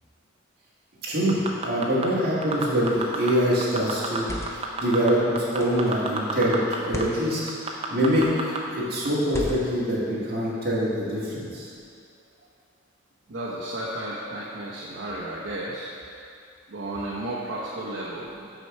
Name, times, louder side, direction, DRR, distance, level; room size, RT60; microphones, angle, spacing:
voice 1, 1.0-11.7, equal, 50° right, -8 dB, 1.9 m, -25 dB
sound 1, 1.3-2.1 2.4-3.3 3.6-4.2 4.5-6.8 7.0-7.1 7.5-8.6 9.0-9.1, right 4 dB, 30° right, 0.6 m, -29 dB
sound 2, 4.1-4.8 5.6-5.9 6.8-7.2 8.1-8.5 9.3-9.9, equal, 15° left, 0.5 m, -36 dB
voice 2, 13.3-15.9 16.7-18.3, right 1 dB, 65° right, -7 dB, 0.8 m, -33 dB
6.2 x 4.5 x 6.5 m, 2.4 s
head